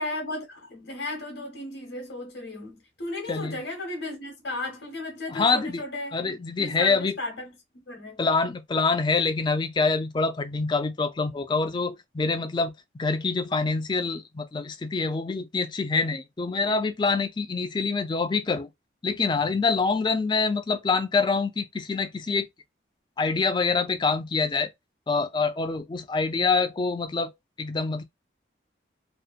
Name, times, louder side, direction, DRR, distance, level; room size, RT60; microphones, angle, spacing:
voice 1, 0.0-6.3 6.6-8.2, left 2 dB, 75° left, 0.9 m, -35 dB
voice 2, 5.3-5.8 6.1-7.2 8.2-18.7 19.0-22.5 23.2-24.7 25.1-27.3 27.6-28.0, left 4 dB, 25° left, 0.3 m, -25 dB
2.7 x 2.0 x 2.3 m
head